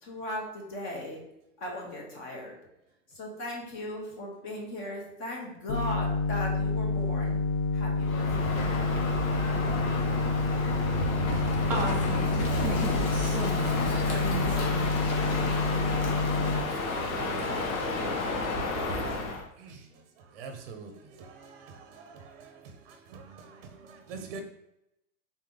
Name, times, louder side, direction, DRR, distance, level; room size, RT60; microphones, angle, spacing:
voice 1, 0.0-1.2 1.6-2.5 3.1-7.4 7.7-8.7 9.6-9.8 16.5-17.3, left 1 dB, 30° left, 1.1 m, -38 dB
sound 1, 5.7-16.6, left 3 dB, 70° left, 0.7 m, -28 dB
Crow, 8.0-19.4, left 2 dB, 85° left, 1.4 m, -31 dB
voice 2, 11.7-15.1, right 2 dB, 5° right, 0.3 m, -36 dB
voice 3, 18.8-19.3 19.6-24.4, right 5 dB, 45° right, 0.7 m, -46 dB
4.1 x 3.2 x 3.8 m
supercardioid pair, 150°, 40 cm